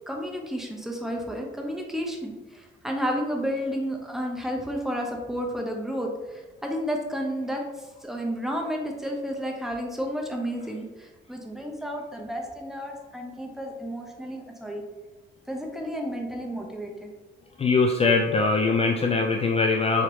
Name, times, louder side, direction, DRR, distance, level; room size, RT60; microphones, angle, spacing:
voice 1, 0.1-7.6 8.0-14.8 15.5-17.1, equal, ahead, 1 dB, 0.7 m, -31 dB
voice 2, 17.6-20.0, left 4 dB, 30° left, 2 dB, 0.3 m, -22 dB
3.9 x 2.9 x 3.1 m, 1.2 s
cardioid pair, 90°, 20 cm